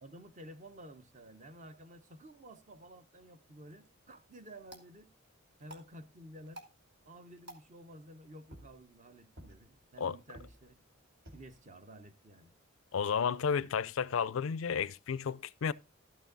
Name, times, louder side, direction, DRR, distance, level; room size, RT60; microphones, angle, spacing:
voice 1, 0.0-5.1 5.6-6.6 7.1-10.8 11.3-12.5, right 1 dB, 40° right, 0.9 m, -52 dB
sound 1, 4.6-13.6, right 1 dB, 55° right, 1.9 m, -58 dB
voice 2, 12.9-15.7, left 6 dB, 80° left, 0.4 m, -32 dB
12.5 x 6.2 x 3.9 m
head